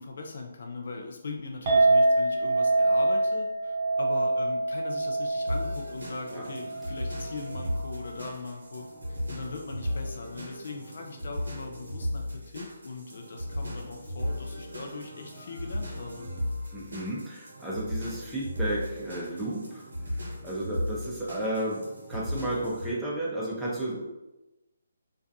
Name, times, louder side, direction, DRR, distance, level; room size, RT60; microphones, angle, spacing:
voice 1, 0.0-16.3, left 3 dB, 60° left, 2 dB, 0.3 m, -40 dB
Chink clink, 1.7-8.0, right 2 dB, 40° right, 0.7 m, -26 dB
sound 1, 5.5-22.9, left 1 dB, 75° right, 0.8 m, -36 dB
voice 2, 16.7-24.0, right 1 dB, 5° right, -7 dB, 0.5 m, -33 dB
2.3 x 2.2 x 2.5 m, 0.98 s
figure-of-eight pair, 145°, 0 cm